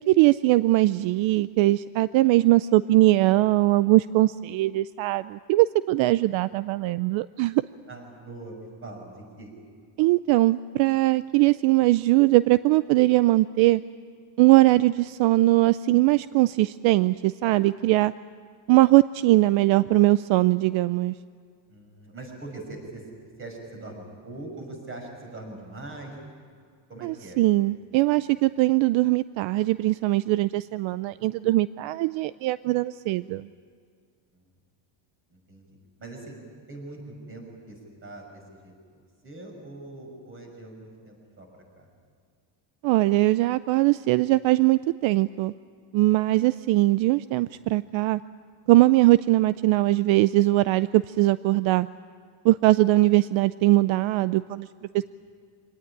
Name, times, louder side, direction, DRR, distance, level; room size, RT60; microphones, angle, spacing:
voice 1, 0.0-7.6 10.0-13.8 14.4-18.1 18.7-21.1 27.0-33.5 42.8-45.5 45.9-48.2 48.7-51.9 52.4-54.7, right 18 dB, 75° right, 15 dB, 0.6 m, -21 dB
voice 2, 7.9-9.5 21.7-23.0 23.4-26.2 26.9-27.4 34.3-34.4 35.3-36.4 36.7-38.7 39.2-41.5 41.8-41.9, right 2 dB, 25° right, 1 dB, 6.3 m, -42 dB
25.0 x 18.5 x 10.0 m, 2.1 s
cardioid pair, 165°, 48 cm